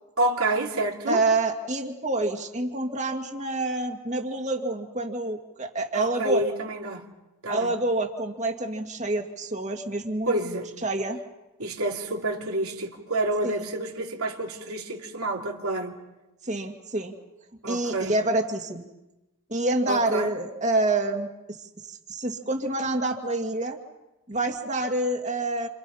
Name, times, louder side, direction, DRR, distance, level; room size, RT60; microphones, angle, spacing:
voice 1, 0.2-1.2 5.9-7.0 7.4-7.7 10.3-10.7 11.6-16.0 17.6-18.1 19.9-20.3, right 2 dB, 75° right, 3.1 m, -28 dB
voice 2, 1.1-6.4 7.5-10.3 10.8-11.2 13.4-13.6 16.4-17.1 17.7-18.9 19.5-21.6 21.8-23.8 24.3-25.7, right 2 dB, 30° right, 2.3 m, -27 dB
29.0 x 27.5 x 5.7 m
head